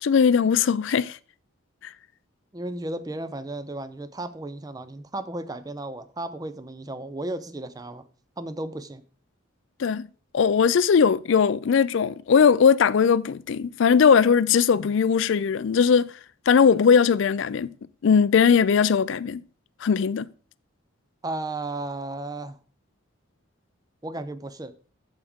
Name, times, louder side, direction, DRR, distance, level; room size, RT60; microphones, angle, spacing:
voice 1, 0.0-1.2 9.8-10.1 10.3-16.1 16.5-17.7 18.0-19.4 19.8-20.3, left 6 dB, 60° left, 0.3 m, -19 dB
voice 2, 2.5-8.1 8.4-9.0 21.2-22.6 24.0-24.7, right 2 dB, 15° right, 0.5 m, -34 dB
14.0 x 4.8 x 3.6 m
head